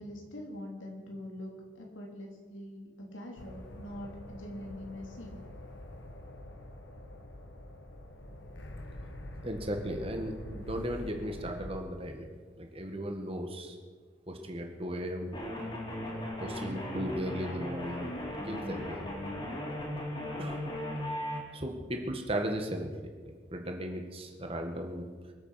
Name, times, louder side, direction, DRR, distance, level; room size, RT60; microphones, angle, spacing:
voice 1, 0.0-5.4, left 1 dB, 90° left, 0 dB, 3.5 m, -44 dB
sound 1, 3.4-11.8, left 1 dB, 70° left, 1.6 m, -45 dB
voice 2, 9.4-12.3 12.6-13.8 14.3-15.3 16.1-18.1 18.4-19.2 20.4-20.7 21.5-22.9 23.2-25.1, equal, 30° right, 3 dB, 1.8 m, -36 dB
sound 2, 15.3-21.4, left 1 dB, 25° left, 3.1 m, -37 dB
23.5 x 8.4 x 5.9 m, 1.5 s
head